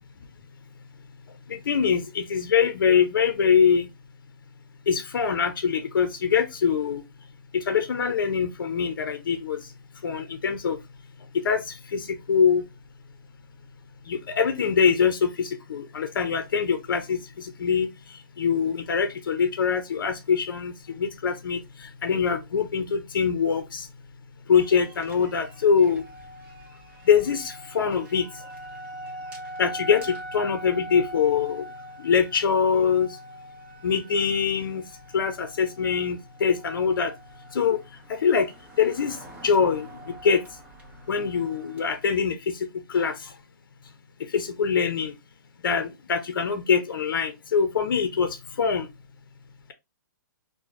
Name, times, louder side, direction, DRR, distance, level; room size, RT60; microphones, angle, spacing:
voice 1, 1.5-3.9 4.9-7.0 7.5-9.6 10.0-10.8 11.3-12.6 14.1-17.9 18.4-21.6 22.0-23.9 24.5-26.0 27.1-28.3 29.6-31.6 32.0-33.1 33.8-34.8 35.1-37.1 37.5-37.8 38.1-38.5 38.8-39.2 39.4-39.9 40.2-40.4 41.1-42.4 42.9-43.1 44.3-45.1 45.6-48.9, left 6 dB, 75° left, 0.6 m, -23 dB
sound 1, 24.5-42.0, right 1 dB, 10° right, 0.8 m, -43 dB
3.7 x 2.1 x 3.1 m
hypercardioid pair, 160°, 11 cm